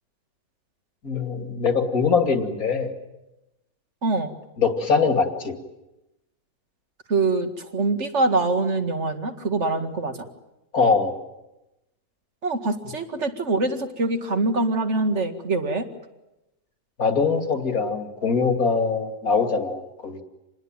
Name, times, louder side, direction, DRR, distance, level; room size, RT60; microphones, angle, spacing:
voice 1, 1.0-2.9 4.6-5.5 10.7-11.1 17.0-20.2, left 5 dB, 60° left, 6 dB, 2.9 m, -22 dB
voice 2, 4.0-4.3 7.1-10.1 12.4-15.9, right 3 dB, 45° right, 7 dB, 2.3 m, -24 dB
27.5 x 20.5 x 9.1 m, 0.97 s
omnidirectional pair, 1.7 m